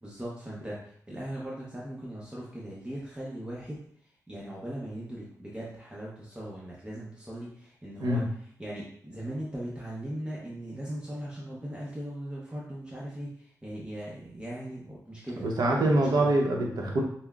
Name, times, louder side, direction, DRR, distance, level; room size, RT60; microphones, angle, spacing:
voice 1, 0.0-15.5 16.0-16.3, right 1 dB, 15° right, -6 dB, 0.7 m, -39 dB
voice 2, 15.4-17.0, right 1 dB, 85° right, -1 dB, 0.7 m, -24 dB
5.5 x 2.0 x 2.3 m, 0.63 s
wide cardioid pair, 95°, 7 cm